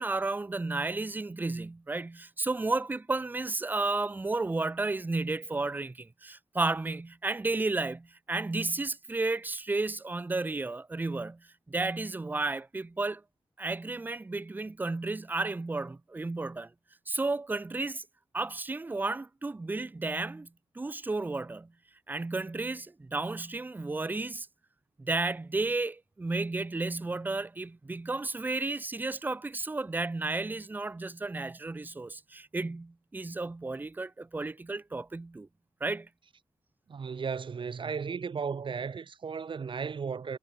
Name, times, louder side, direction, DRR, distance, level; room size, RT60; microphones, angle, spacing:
voice 1, 0.0-11.4 11.7-13.2 13.6-16.7 17.1-18.0 18.3-20.5 20.8-21.7 22.1-24.5 25.0-35.5 35.8-36.1, right 3 dB, 15° right, 0.5 m, -32 dB
voice 2, 36.9-40.4, right 6 dB, 50° right, 1.4 m, -35 dB
wide cardioid pair, 100°, 11 cm